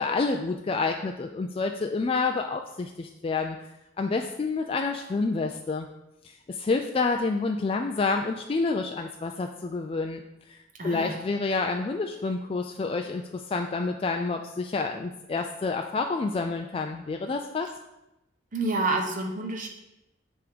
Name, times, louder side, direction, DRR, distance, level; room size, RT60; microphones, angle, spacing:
voice 1, 0.0-3.6 4.0-5.9 6.5-10.2 10.5-17.7, left 3 dB, 30° left, 4 dB, 0.3 m, -28 dB
voice 2, 10.8-11.2 18.5-19.7, right 2 dB, 45° right, 2 dB, 1.0 m, -28 dB
7.7 x 3.6 x 5.1 m, 0.91 s
head